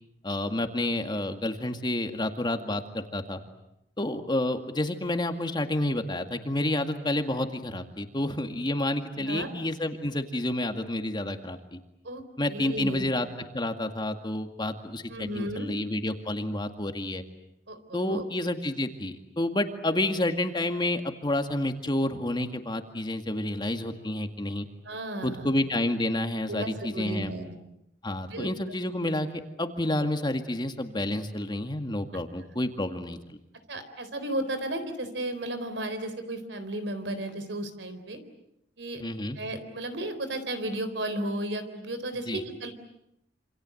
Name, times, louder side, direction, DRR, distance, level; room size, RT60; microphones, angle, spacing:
voice 1, 0.2-3.4 4.0-11.8 12.4-13.3 13.5-17.2 17.9-24.7 25.2-27.3 28.0-29.3 29.6-33.4 39.0-39.4 42.3-42.4, left 1 dB, 25° left, 6 dB, 2.1 m, -29 dB
voice 2, 9.2-9.5 12.0-13.1 15.1-15.7 17.7-18.2 24.8-25.5 26.5-27.6 28.2-28.5 33.7-38.2 38.8-39.0 39.4-42.7, right 1 dB, 80° right, 10 dB, 3.9 m, -34 dB
27.5 x 27.0 x 7.9 m, 0.83 s
head